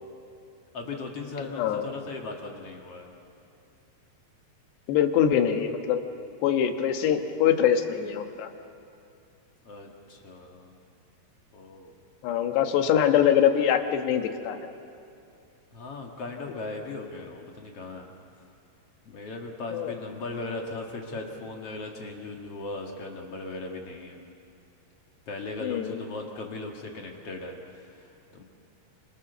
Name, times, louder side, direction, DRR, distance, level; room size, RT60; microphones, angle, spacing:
voice 1, 0.7-3.1 9.6-10.8 11.5-11.9 15.7-18.1 19.1-24.2 25.3-28.4, left 3 dB, 45° left, 1 dB, 2.1 m, -38 dB
voice 2, 1.4-1.9 4.9-6.0 6.4-8.5 12.2-14.7 19.7-19.9 25.6-26.0, left 9 dB, 75° left, 6 dB, 3.4 m, -24 dB
28.0 x 26.5 x 6.9 m, 2.6 s
omnidirectional pair, 5.0 m